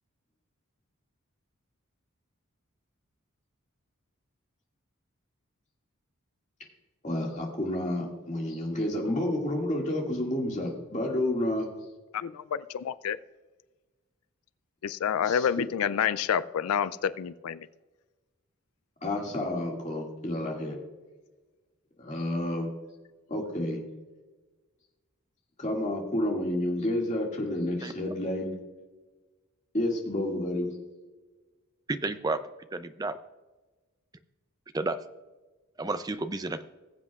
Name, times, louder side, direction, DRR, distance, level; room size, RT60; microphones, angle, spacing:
voice 1, 7.0-11.7 15.3-15.6 19.0-20.8 22.0-22.7 23.3-23.8 25.6-28.5 29.7-30.7, left 1 dB, 35° left, -1 dB, 2.1 m, -30 dB
voice 2, 12.1-13.2 14.8-17.7, left 8 dB, 90° left, 16 dB, 0.4 m, -28 dB
voice 3, 31.9-32.4 32.7-33.2 34.7-35.0 35.8-36.6, right 2 dB, 20° right, 11 dB, 0.4 m, -31 dB
21.0 x 7.7 x 2.4 m, 1.2 s
head